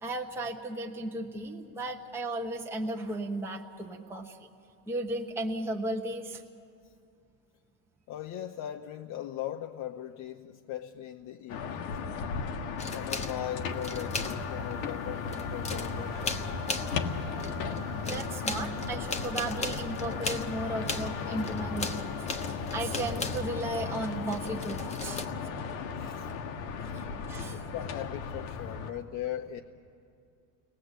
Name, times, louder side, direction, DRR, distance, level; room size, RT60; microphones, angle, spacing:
voice 1, 0.0-4.5 4.9-6.4 18.1-25.2 26.9-27.6, right 1 dB, 5° right, 0 dB, 1.0 m, -35 dB
voice 2, 8.1-11.9 12.8-16.4 25.1-25.2 25.9-26.3 26.9-27.0 27.5-29.6, left 11 dB, 45° left, 5 dB, 0.8 m, -39 dB
sound 1, 11.5-28.9, left 5 dB, 80° left, 1.6 m, -36 dB
sound 2, 12.8-14.8 15.1-17.1 17.4-23.8 24.3-25.2, left 3 dB, 15° left, 1.0 m, -37 dB
Wind instrument woodwind instrument, 13.4-22.5, equal, 25° right, 1.6 m, -49 dB
30.0 x 19.0 x 8.2 m, 2.5 s
cardioid pair, 150°, 40 cm